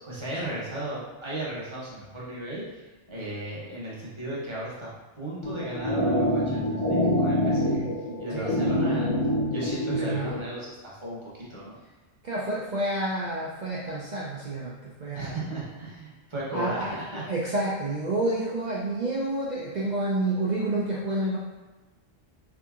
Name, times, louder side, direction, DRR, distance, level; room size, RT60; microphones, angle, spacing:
voice 1, 0.0-4.9 5.1-7.8 8.2-9.1 9.5-11.8 15.1-17.2, right 1 dB, 25° right, -7 dB, 0.8 m, -36 dB
sound 1, 5.4-10.4, equal, 40° left, 0.4 m, -26 dB
voice 2, 9.9-10.3 12.2-15.4 16.5-16.9 17.3-21.4, right 2 dB, 75° right, -6 dB, 0.4 m, -29 dB
3.4 x 2.7 x 2.4 m, 1.2 s
omnidirectional pair, 1.3 m